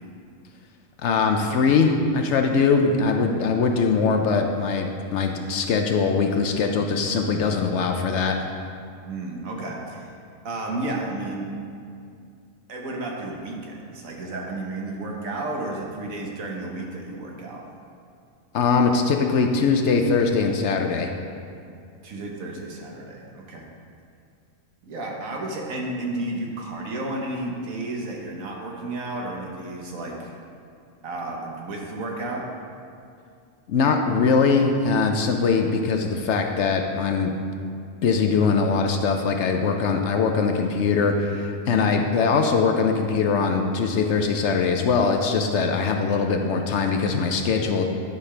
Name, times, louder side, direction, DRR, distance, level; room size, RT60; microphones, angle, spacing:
voice 1, 1.0-8.4 18.5-21.1 33.7-37.3 38.0-47.9, left 5 dB, 65° left, 4 dB, 0.8 m, -22 dB
voice 2, 9.0-10.1 10.4-11.5 12.7-17.6 22.0-23.6 24.8-30.3 31.0-32.5, right 2 dB, 75° right, -1 dB, 1.5 m, -32 dB
10.5 x 5.6 x 3.3 m, 2.4 s
omnidirectional pair, 1.4 m